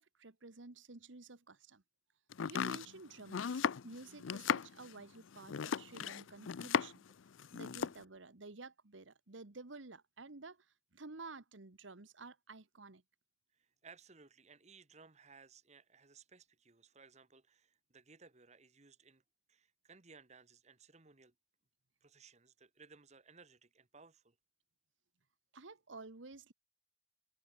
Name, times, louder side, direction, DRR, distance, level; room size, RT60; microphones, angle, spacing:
voice 1, 0.0-1.8 2.5-7.0 7.5-10.7 10.9-13.0 25.5-26.5, right 3 dB, 75° right, 1.4 m, -52 dB
Domestic sounds home sounds, 2.3-7.1 7.4-8.0, left 7 dB, 85° left, 0.5 m, -36 dB
voice 2, 13.5-19.2 19.5-21.3 22.0-24.4, right 5 dB, 35° right, 1.4 m, -61 dB
head